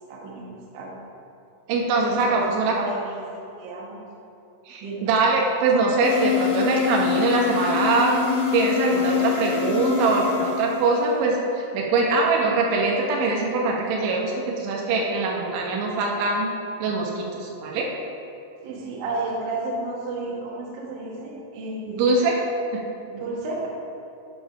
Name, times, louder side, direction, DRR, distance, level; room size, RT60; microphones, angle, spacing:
voice 1, 0.1-0.9 2.1-3.3 3.6-4.0 4.8-5.1 18.6-22.0 23.1-23.7, right 2 dB, 65° right, -3 dB, 2.8 m, -32 dB
voice 2, 1.7-2.8 4.7-8.2 8.5-16.5 16.8-17.9 22.0-22.4, right 3 dB, 85° right, -1 dB, 3.4 m, -22 dB
sound 1, 6.0-11.3, left 8 dB, 85° left, 3.4 m, -26 dB
11.5 x 5.4 x 5.5 m, 2.7 s
omnidirectional pair, 5.3 m